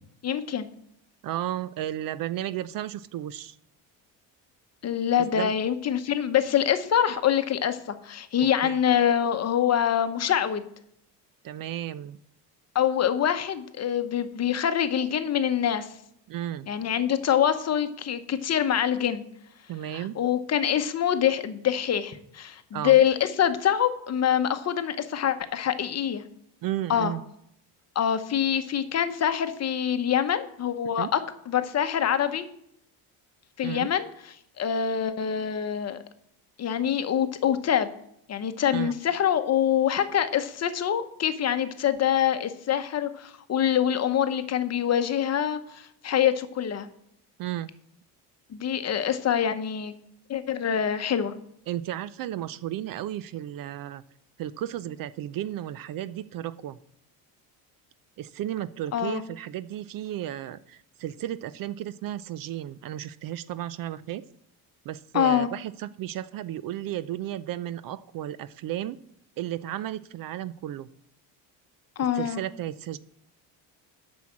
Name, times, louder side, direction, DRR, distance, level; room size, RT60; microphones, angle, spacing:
voice 1, 0.2-0.7 4.8-10.6 12.7-15.9 16.7-19.2 19.9-26.2 26.9-27.1 27.9-31.2 31.5-32.5 33.6-34.1 34.6-36.0 36.6-37.9 38.3-46.9 48.5-49.9 50.3-51.3 58.9-59.2 65.1-65.5 72.0-72.4, left 9 dB, 35° left, 10 dB, 0.9 m, -25 dB
voice 2, 1.2-3.6 5.3-5.5 8.6-8.8 11.4-12.2 16.3-16.7 19.7-20.1 22.7-23.0 26.6-27.2 31.0-31.1 33.6-33.9 38.7-38.9 47.4-47.7 51.7-54.0 54.4-56.8 58.2-64.2 64.9-69.0 69.4-70.9 72.0-73.0, right 12 dB, 50° right, 16 dB, 0.5 m, -33 dB
8.1 x 6.3 x 7.3 m, 0.73 s
cardioid pair, 120°, 44 cm